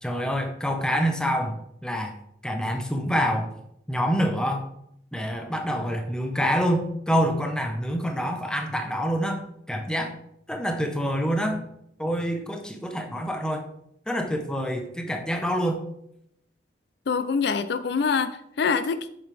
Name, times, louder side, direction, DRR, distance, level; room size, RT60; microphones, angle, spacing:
voice 1, 0.0-2.1 2.4-3.5 3.9-4.7 5.1-9.4 9.7-10.1 10.5-11.6 12.0-13.6 14.1-15.8, equal, 5° left, 0.8 m, -26 dB
voice 2, 17.1-19.1, left 5 dB, 60° left, 0.4 m, -25 dB
7.7 x 5.9 x 3.4 m
head